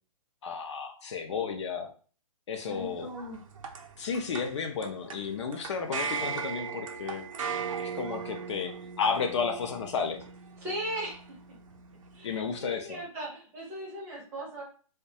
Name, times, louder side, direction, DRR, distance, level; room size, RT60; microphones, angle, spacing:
voice 1, 0.4-1.9 2.5-3.1 4.0-7.2 7.8-10.2 12.2-13.0, left 5 dB, 55° left, 5 dB, 0.4 m, -32 dB
voice 2, 2.7-3.4 10.6-11.2 12.1-14.6, right 1 dB, 15° right, -4 dB, 0.5 m, -38 dB
sound 1, 2.7-12.8, right 6 dB, 65° right, 0.5 m, -39 dB
2.3 x 2.1 x 2.7 m, 0.40 s
hypercardioid pair, 165°, 18 cm